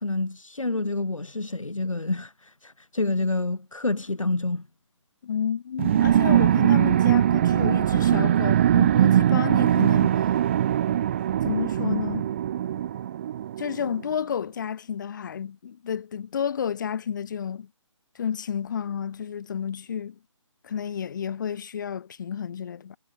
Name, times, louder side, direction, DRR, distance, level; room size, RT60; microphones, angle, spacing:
voice 1, 0.0-4.7, left 2 dB, 80° left, 1.8 m, -28 dB
voice 2, 5.2-10.2 11.4-12.3 13.6-17.7 18.1-20.2 20.6-23.0, left 8 dB, 35° left, 3.1 m, -31 dB
sound 1, 5.8-13.9, right 11 dB, 25° right, 0.8 m, -21 dB
figure-of-eight pair, 150°, 16 cm